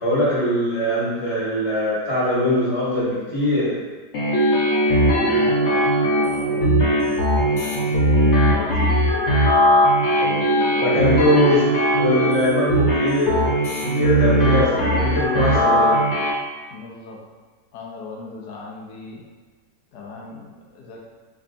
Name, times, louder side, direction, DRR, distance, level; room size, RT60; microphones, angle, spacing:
voice 1, 0.0-3.7 10.8-11.6 12.0-13.4 13.8-16.1, left 1 dB, 20° left, -10 dB, 1.0 m, -21 dB
sound 1, 4.1-16.3, equal, 60° left, 0.8 m, -19 dB
voice 2, 5.1-5.8 6.3-9.0 10.0-11.3 16.7-17.2 17.7-19.2 19.9-21.0, left 4 dB, 85° left, -2 dB, 1.2 m, -37 dB
4.4 x 2.7 x 2.5 m, 1.3 s
omnidirectional pair, 1.7 m